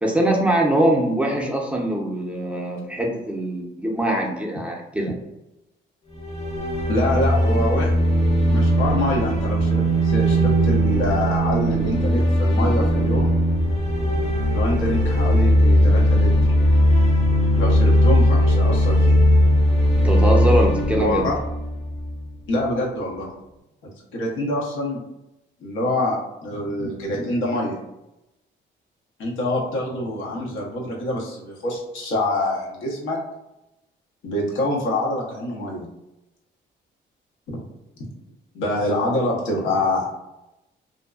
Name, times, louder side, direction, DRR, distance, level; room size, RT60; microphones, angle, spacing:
voice 1, 0.0-5.1 20.0-21.3, right 1 dB, 5° right, -1 dB, 0.5 m, -22 dB
sound 1, 6.2-22.3, equal, 30° left, 0.7 m, -19 dB
voice 2, 6.9-7.9 8.5-13.3 14.5-16.3 17.5-19.2 21.0-21.3 22.5-23.3 24.1-25.0 25.6-27.8 29.2-33.2 34.2-35.8 37.5-37.7 38.5-40.2, left 1 dB, 80° left, -2 dB, 0.8 m, -25 dB
2.6 x 2.3 x 2.3 m, 0.92 s
cardioid pair, 90°, 20 cm